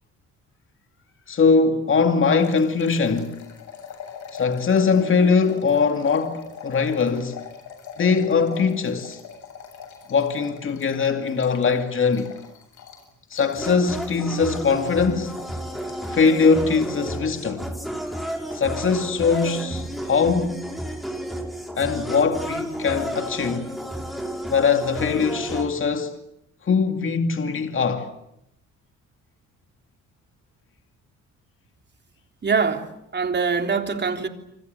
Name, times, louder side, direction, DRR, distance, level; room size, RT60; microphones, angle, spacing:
voice 1, 1.3-3.4 4.3-7.4 8.0-9.2 10.1-12.3 13.3-15.4 16.1-17.7 18.5-20.6 21.8-23.7 24.5-26.1 26.6-28.1, left 5 dB, 45° left, 2.5 m, -21 dB
sound 1, 2.4-17.2, left 7 dB, 75° left, 7.8 m, -42 dB
sound 2, 13.6-25.7, equal, ahead, 6.0 m, -32 dB
voice 2, 32.4-34.3, right 5 dB, 35° right, 3.6 m, -24 dB
28.5 x 25.0 x 8.1 m
cardioid pair, 90°, 30 cm